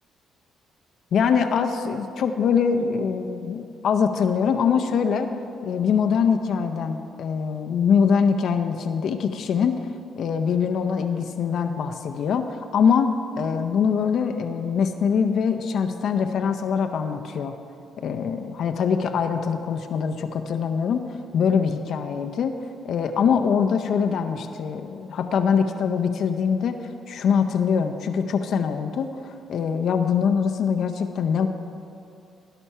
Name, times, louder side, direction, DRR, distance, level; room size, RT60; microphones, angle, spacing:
voice 1, 1.1-5.3 5.6-9.8 10.2-17.6 18.0-21.0 21.3-22.6 22.8-31.5, left 6 dB, 65° left, 6 dB, 0.6 m, -23 dB
16.0 x 5.9 x 5.5 m, 2.6 s
cardioid pair, 90°, 0 cm